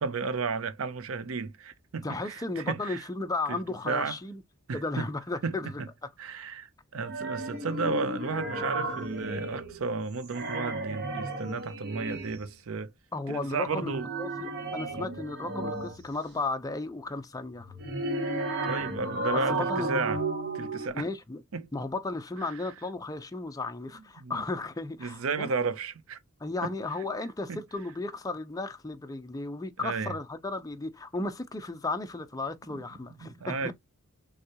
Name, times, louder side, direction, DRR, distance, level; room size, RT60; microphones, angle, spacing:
voice 1, 0.0-3.0 3.5-4.1 4.7-5.1 5.4-5.9 6.2-12.9 13.3-14.1 15.0-15.1 18.7-20.2 20.5-21.1 21.5-21.7 22.4-22.5 24.2-24.4 25.0-26.2 26.6-26.7 27.5-27.6 29.8-30.1 33.2-33.7, right 4 dB, 70° right, 0.6 m, -33 dB
voice 2, 2.0-4.4 4.7-5.7 13.1-13.9 14.2-17.7 19.3-20.0 20.9-21.4 21.7-25.5 26.4-33.7, left 3 dB, 15° left, 0.5 m, -34 dB
sound 1, 7.0-9.9 10.2-12.5 13.6-16.2 17.6-20.9, right 2 dB, 55° right, 1.2 m, -33 dB
6.3 x 2.3 x 2.8 m
head